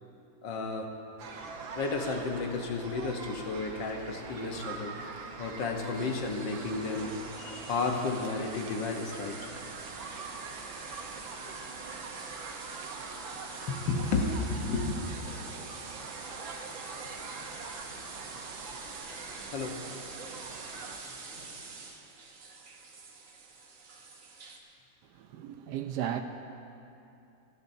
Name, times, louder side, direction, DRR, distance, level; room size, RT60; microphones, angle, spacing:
voice 1, 0.4-0.9 1.8-5.0 5.4-9.5 13.6-15.0 15.3-15.4 17.4-17.5 19.5-19.9, left 3 dB, 70° left, 2 dB, 1.7 m, -32 dB
sound 1, 1.2-21.0, right 4 dB, 90° right, 1.7 m, -43 dB
sound 2, 5.9-24.6, right 4 dB, 50° right, 1.2 m, -46 dB
voice 2, 25.1-26.2, right 11 dB, 75° right, 7 dB, 1.1 m, -35 dB
26.0 x 9.9 x 2.7 m, 2.7 s
omnidirectional pair, 2.0 m